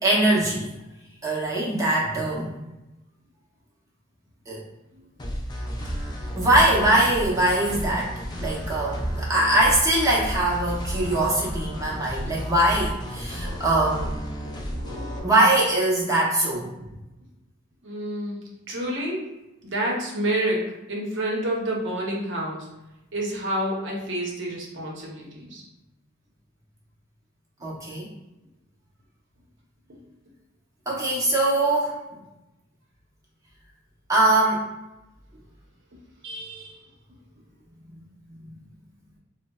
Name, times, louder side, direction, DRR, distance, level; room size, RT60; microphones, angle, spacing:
voice 1, 0.0-0.7 1.2-2.5 4.5-4.7 6.3-14.1 15.2-16.9 27.6-28.1 30.9-32.0 34.1-34.7, right 1 dB, 15° right, -5 dB, 0.6 m, -22 dB
sound 1, 5.2-15.2, equal, 20° left, 0.3 m, -32 dB
voice 2, 14.4-15.3 17.8-18.4 18.7-19.2 19.6-20.6 20.9-22.7 23.1-25.6 36.2-36.8, right 1 dB, 60° right, -2 dB, 0.7 m, -29 dB
3.7 x 2.0 x 2.2 m, 0.98 s
head